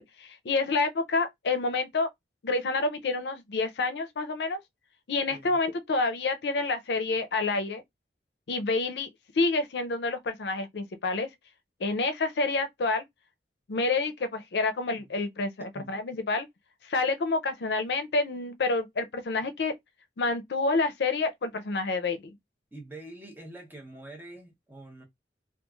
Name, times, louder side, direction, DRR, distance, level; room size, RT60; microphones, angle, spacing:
voice 1, 0.0-2.1 2.4-4.6 5.1-7.8 8.5-9.1 9.3-11.3 11.8-13.0 13.7-16.5 16.9-19.7 20.2-22.2, left 3 dB, 70° left, 0.5 m, -28 dB
voice 2, 22.7-25.0, right 2 dB, 10° right, 0.7 m, -45 dB
3.0 x 2.4 x 2.3 m
head